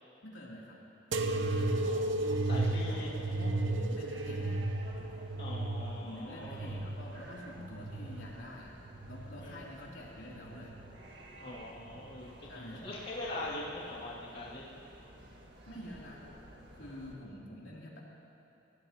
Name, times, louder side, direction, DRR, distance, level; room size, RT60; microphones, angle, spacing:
voice 1, 0.2-0.8 1.3-1.9 2.9-4.6 6.0-8.7 9.1-10.7 12.5-13.0 15.7-16.2 16.7-18.0, left 1 dB, 80° left, -4 dB, 3.1 m, -47 dB
sound 1, 1.1-17.2, right 1 dB, 55° right, 1.8 m, -53 dB
sound 2, 1.1-8.3 8.9-9.6 10.4-10.9 11.9-12.0, right 2 dB, 75° right, 0.8 m, -34 dB
voice 2, 1.8-3.1 5.4-6.8 9.4-9.6 11.4-14.7, left 2 dB, 50° left, -8 dB, 2.5 m, -43 dB
26.0 x 18.0 x 3.0 m, 2.9 s
head